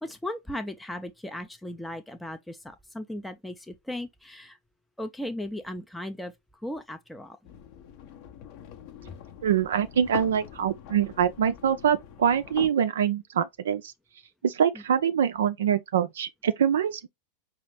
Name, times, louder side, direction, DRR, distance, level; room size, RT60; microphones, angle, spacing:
voice 1, 0.0-4.6 5.0-6.3 6.6-7.4, left 1 dB, 5° left, 0.4 m, -36 dB
sound 1, 7.4-12.7, left 9 dB, 45° left, 0.6 m, -43 dB
voice 2, 9.4-13.9 14.4-17.1, right 8 dB, 60° right, 0.3 m, -24 dB
4.8 x 2.4 x 3.2 m
figure-of-eight pair, 90°, 0 cm